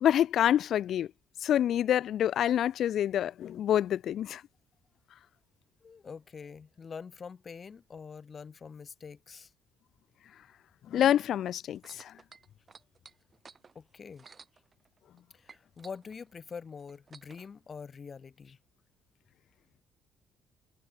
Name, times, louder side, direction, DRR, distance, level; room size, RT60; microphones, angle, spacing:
voice 1, 0.0-1.1 1.4-4.4 10.9-12.1, left 10 dB, 65° left, 0.4 m, -27 dB
voice 2, 5.8-9.5 13.7-14.3 15.3-18.6, left 5 dB, 45° left, 2.0 m, -45 dB
sound 1, 11.7-15.2 15.5-17.5 18.3-18.4, right 5 dB, 40° right, 2.4 m, -55 dB
supercardioid pair, 60°, 0 cm